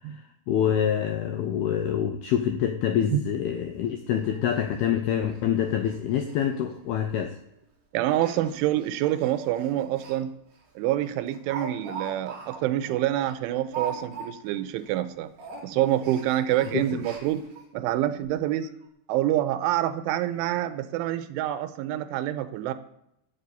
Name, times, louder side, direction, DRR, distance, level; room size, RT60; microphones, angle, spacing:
voice 1, 0.5-7.3 16.7-17.0, left 9 dB, 85° left, 6 dB, 2.2 m, -26 dB
Speech, 3.3-3.4 3.8-3.9 4.2-4.3 4.7-4.8 5.3-5.4 5.7-6.0 6.2-6.3 7.1-7.3 8.1-10.2 10.5-10.6 11.0-14.6 14.8-15.1 15.3-17.6 18.2-18.3 18.6-18.7, right 5 dB, 40° right, 3.2 m, -40 dB
voice 2, 7.9-10.3 10.8-15.3 15.6-17.4 17.7-18.7 19.1-22.7, right 13 dB, 85° right, 12 dB, 3.2 m, -27 dB
12.5 x 7.6 x 8.3 m, 0.78 s
omnidirectional pair, 5.6 m